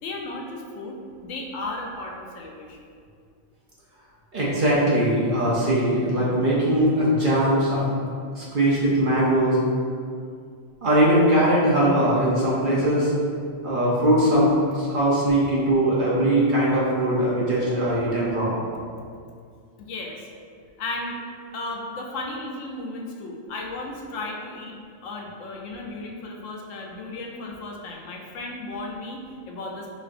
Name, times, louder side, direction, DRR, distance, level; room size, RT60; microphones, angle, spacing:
voice 1, 0.0-2.8 19.8-20.3 20.8-21.2 21.5-29.9, left 2 dB, 75° left, 0 dB, 0.9 m, -35 dB
voice 2, 4.3-7.9 8.3-9.6 10.8-13.1 13.6-18.6, right 1 dB, 50° right, -6 dB, 0.7 m, -21 dB
5.1 x 2.6 x 2.5 m, 2.2 s
omnidirectional pair, 1.4 m